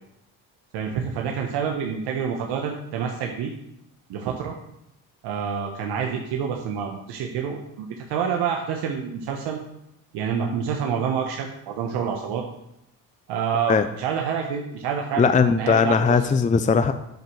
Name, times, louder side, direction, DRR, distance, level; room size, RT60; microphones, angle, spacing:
voice 1, 0.7-3.5 4.1-4.5 5.2-9.6 10.1-12.4 13.3-16.2, right 7 dB, 70° right, 1 dB, 1.2 m, -27 dB
voice 2, 15.2-16.9, left 5 dB, 20° left, 9 dB, 0.6 m, -19 dB
9.2 x 5.2 x 6.3 m, 0.84 s
supercardioid pair, 65°, 41 cm